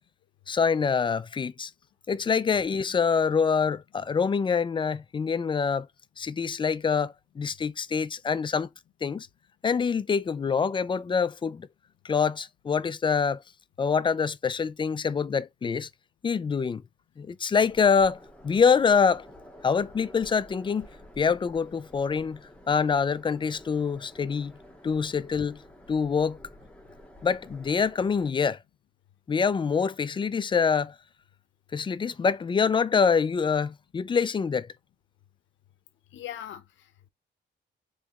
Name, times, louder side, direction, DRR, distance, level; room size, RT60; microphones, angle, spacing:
voice 1, 0.5-1.7 2.1-5.9 6.2-8.7 9.0-9.3 9.6-11.7 12.0-13.4 13.8-15.9 16.2-16.8 17.2-18.2 18.4-19.2 19.6-20.9 21.2-22.4 22.7-24.6 24.8-25.6 25.9-26.4 27.2-28.6 29.3-31.0 31.7-34.7, left 6 dB, 25° left, 0.4 m, -25 dB
sound 1, 17.7-28.3, left 1 dB, 5° left, 1.5 m, -50 dB
voice 2, 36.1-37.1, left 11 dB, 85° left, 0.6 m, -41 dB
3.5 x 3.0 x 2.9 m
cardioid pair, 100°, 19 cm